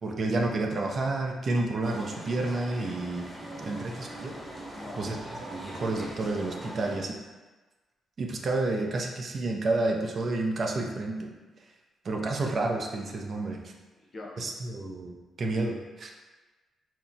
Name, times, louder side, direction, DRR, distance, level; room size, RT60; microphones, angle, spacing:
voice 1, 0.0-3.3 3.6-4.3 5.0-5.2 5.5-7.2 8.2-11.3 12.0-13.6 14.4-16.1, right 2 dB, 50° right, 1 dB, 0.4 m, -30 dB
sound 1, 1.8-7.0, right 1 dB, ahead, 0.8 m, -41 dB
voice 2, 3.4-3.9 4.7-5.1 14.0-14.3, left 2 dB, 45° left, -2 dB, 0.6 m, -44 dB
2.8 x 2.1 x 2.6 m, 1.2 s
cardioid pair, 70°, 0 cm